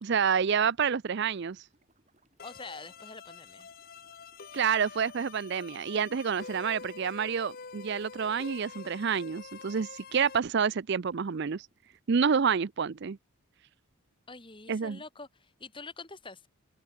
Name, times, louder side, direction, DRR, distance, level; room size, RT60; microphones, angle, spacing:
voice 1, 0.0-1.6 4.5-11.7 12.1-13.2 14.7-15.0, right 6 dB, 50° right, 0.5 m, -28 dB
sound 1, 1.1-12.0, right 2 dB, 30° right, 6.2 m, -71 dB
sound 2, 2.4-10.4, left 5 dB, 40° left, 0.8 m, -47 dB
voice 2, 2.4-3.7 14.3-16.5, left 3 dB, 25° left, 2.6 m, -46 dB
head